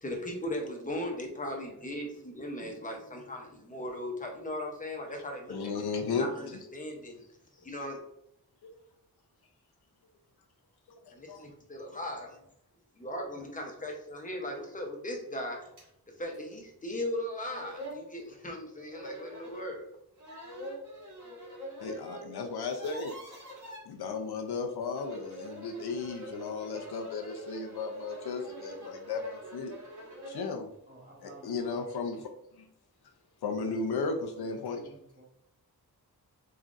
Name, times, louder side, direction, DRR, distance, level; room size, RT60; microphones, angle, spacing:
voice 1, 0.0-5.5 5.8-5.9 6.2-7.2 7.5-8.0 11.1-12.4 13.0-15.6 16.2-19.9, left 1 dB, 20° left, 1 dB, 0.7 m, -38 dB
voice 2, 5.5-6.3 8.6-8.7 11.3-11.5 21.8-23.1 23.9-29.7 30.3-30.7 31.4-32.3 32.6-32.7 33.4-34.8, left 4 dB, 80° left, 4 dB, 0.6 m, -34 dB
sound 1, 15.8-15.9 16.3-16.4 17.1-17.2 17.4-18.0 18.9-19.6 20.2-22.2 22.5-23.8 24.8-30.5, equal, 55° right, 1.5 m, -45 dB
voice 3, 30.9-31.8 33.5-35.2, right 2 dB, 20° right, -3 dB, 0.9 m, -52 dB
4.2 x 3.7 x 2.5 m, 0.77 s
wide cardioid pair, 170°, 38 cm